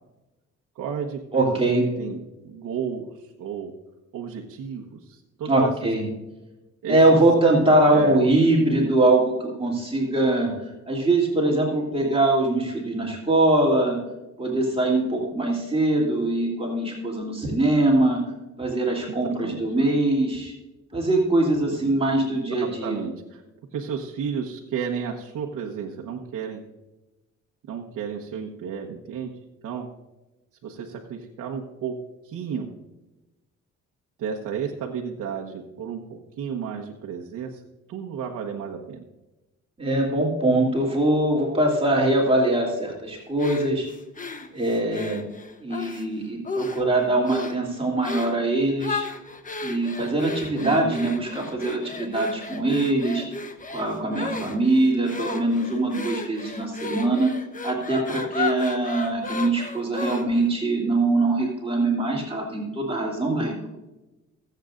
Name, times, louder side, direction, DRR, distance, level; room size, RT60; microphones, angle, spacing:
voice 1, 0.7-1.6 2.0-3.7 4.1-5.7 6.8-7.2 7.9-8.3 19.1-19.6 21.7-22.0 22.3-23.4 23.7-26.6 27.7-29.3 29.6-29.9 30.6-31.9 32.2-32.7 34.2-37.6 37.9-39.0 50.6-51.0, right 7 dB, 80° right, 0 dB, 1.3 m, -32 dB
voice 2, 1.3-1.9 5.4-6.0 6.9-14.0 14.4-18.2 18.6-20.5 20.9-23.0 39.8-43.9 44.5-45.2 45.6-49.0 49.6-53.3 53.7-57.3 57.6-63.7, right 2 dB, 20° right, -3 dB, 3.0 m, -22 dB
sound 1, 43.4-46.1 46.4-46.9 47.2-47.6 48.0-48.4 48.8-60.5, left 3 dB, 25° left, 1.1 m, -34 dB
23.0 x 8.1 x 2.6 m, 1.0 s
cardioid pair, 90°, 30 cm